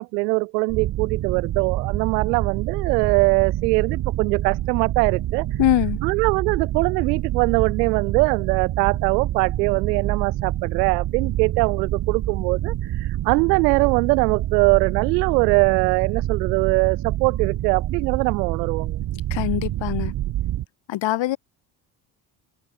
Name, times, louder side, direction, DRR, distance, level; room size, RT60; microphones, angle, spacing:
voice 1, 0.0-5.5 6.0-19.0, right 28 dB, 85° right, 1.5 m, -22 dB
sound 1, 0.7-20.7, right 13 dB, 55° right, 1.8 m, -27 dB
voice 2, 5.6-6.0 19.3-20.1 20.9-21.4, left 15 dB, 65° left, 4.6 m, -22 dB
hypercardioid pair, 65°, 48 cm